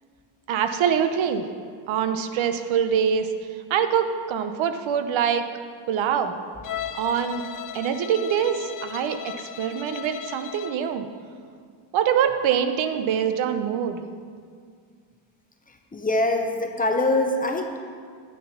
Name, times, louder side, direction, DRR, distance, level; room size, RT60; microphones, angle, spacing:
voice 1, 0.5-1.4 1.8-3.3 3.7-5.5 5.9-6.3 6.9-7.4 7.7-11.1 11.9-14.0, right 8 dB, 70° right, 8 dB, 0.8 m, -24 dB
Bowed string instrument, 6.6-10.9, left 9 dB, 45° left, 0.5 m, -36 dB
voice 2, 15.9-17.8, left 2 dB, 20° left, 4 dB, 0.8 m, -24 dB
10.0 x 6.8 x 5.7 m, 2.1 s
cardioid pair, 125°, 48 cm